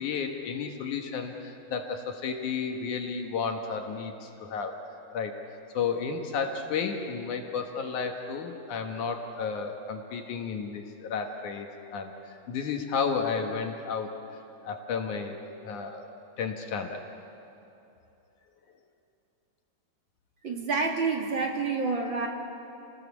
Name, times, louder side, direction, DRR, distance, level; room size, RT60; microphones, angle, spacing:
voice 1, 0.0-4.7 5.1-5.3 5.7-14.1 14.6-16.1 16.4-17.0, left 5 dB, 65° left, 4 dB, 2.6 m, -32 dB
voice 2, 20.4-22.3, right 4 dB, 40° right, 1 dB, 2.5 m, -28 dB
29.5 x 20.0 x 7.1 m, 2.8 s
omnidirectional pair, 3.9 m